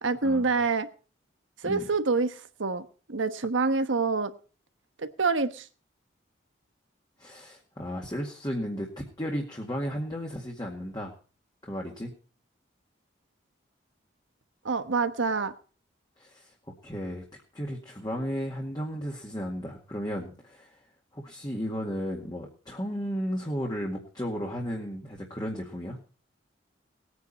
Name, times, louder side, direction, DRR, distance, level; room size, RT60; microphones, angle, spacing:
voice 1, 0.0-0.9 1.6-4.3 5.0-5.7 14.6-15.5, right 4 dB, 90° right, 10 dB, 1.2 m, -27 dB
voice 2, 7.2-11.1 11.6-12.1 16.2-16.5 16.8-17.2 17.5-20.8 21.1-26.0, equal, 20° left, -1 dB, 2.0 m, -34 dB
19.5 x 9.7 x 4.2 m, 0.39 s
head